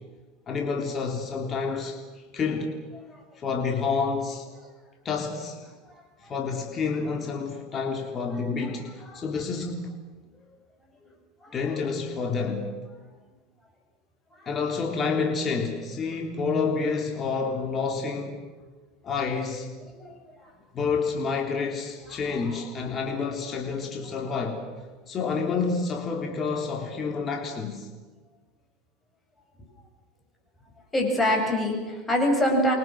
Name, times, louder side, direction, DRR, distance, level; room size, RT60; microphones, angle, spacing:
voice 1, 0.5-2.7 3.4-4.5 5.0-5.7 6.2-9.9 11.5-12.7 14.5-18.4 19.0-19.7 20.7-24.7 25.1-27.9, left 5 dB, 30° left, 2 dB, 3.7 m, -29 dB
voice 2, 8.3-8.7 9.0-9.4 11.4-11.8 14.6-14.7 19.8-20.2 22.0-22.6 24.0-24.2 30.9-32.7, equal, 15° left, 2 dB, 7.6 m, -27 dB
29.5 x 24.0 x 6.4 m, 1.3 s
supercardioid pair, 115°, 0 cm